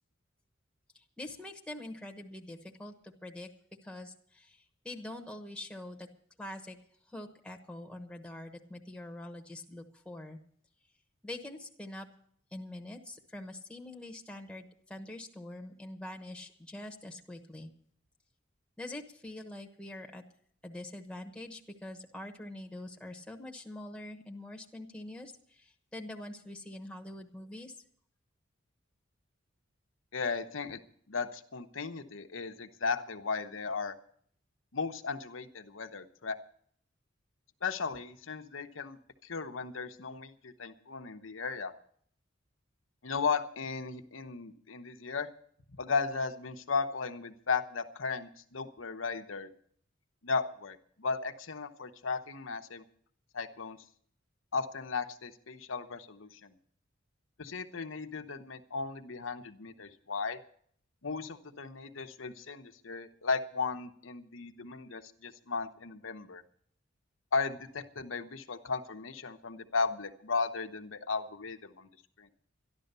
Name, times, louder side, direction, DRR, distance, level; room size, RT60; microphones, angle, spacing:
voice 1, 0.9-3.5 3.8-6.1 6.4-6.8 7.1-10.4 11.2-12.1 12.5-17.7 18.8-20.2 20.6-27.8, left 1 dB, 5° left, 2 dB, 1.1 m, -44 dB
voice 2, 30.1-30.8 31.1-34.0 34.7-36.4 37.6-41.7 43.0-45.3 45.7-49.5 50.2-52.8 53.3-53.8 54.5-56.5 57.4-60.4 61.0-66.4 67.3-71.9 72.2-72.3, left 4 dB, 85° left, 8 dB, 1.0 m, -35 dB
13.0 x 11.5 x 6.7 m, 0.62 s
head